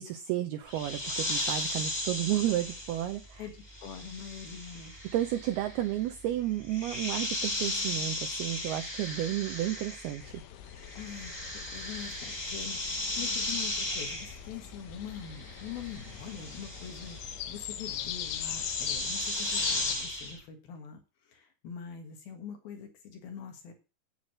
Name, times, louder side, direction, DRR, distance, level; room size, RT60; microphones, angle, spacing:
voice 1, 0.0-3.4 5.1-10.4, right 13 dB, 85° right, 7 dB, 2.3 m, -32 dB
sound 1, 0.7-10.4 10.7-20.4, left 1 dB, 15° left, 1.7 m, -36 dB
voice 2, 3.4-4.9 10.9-11.3 11.7-23.7, left 7 dB, 60° left, 5 dB, 3.1 m, -44 dB
sound 2, 10.2-20.0, left 11 dB, 85° left, 3.3 m, -40 dB
9.4 x 8.3 x 6.3 m, 0.32 s
omnidirectional pair, 5.4 m